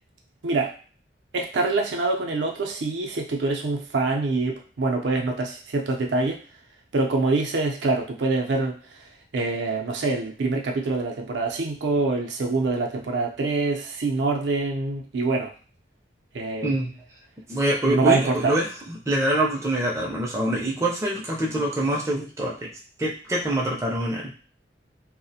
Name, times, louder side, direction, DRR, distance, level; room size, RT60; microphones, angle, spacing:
voice 1, 0.4-0.7 1.3-6.4 6.9-8.8 9.3-15.5 16.3-16.7 17.9-18.5, right 3 dB, 80° right, 1 dB, 0.5 m, -25 dB
voice 2, 17.5-22.7 23.0-24.3, right 1 dB, 15° right, -3 dB, 0.4 m, -25 dB
2.3 x 2.0 x 2.7 m, 0.38 s
head